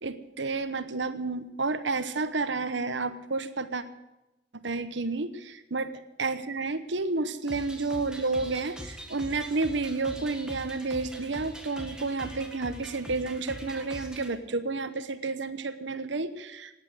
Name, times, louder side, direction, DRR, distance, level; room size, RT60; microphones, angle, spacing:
voice 1, 0.0-3.8 4.6-5.9 6.2-16.7, right 3 dB, 75° right, 12 dB, 1.1 m, -31 dB
sound 1, 7.5-14.3, equal, 5° right, 1.8 m, -43 dB
17.0 x 9.6 x 7.9 m, 0.98 s
head